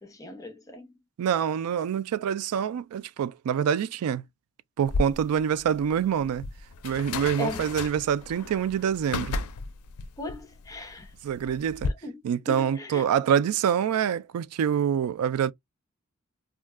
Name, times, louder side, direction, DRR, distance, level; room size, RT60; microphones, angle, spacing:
voice 1, 0.0-1.0 7.4-7.6 10.2-11.1 12.0-12.2 12.5-13.1, left 2 dB, 15° left, 0.7 m, -38 dB
voice 2, 1.2-4.2 4.8-6.4 6.8-9.4 11.2-11.9 12.2-15.5, right 8 dB, 80° right, 0.3 m, -26 dB
sound 1, 4.9-11.9, left 3 dB, 85° left, 0.4 m, -34 dB
2.4 x 2.1 x 3.5 m
head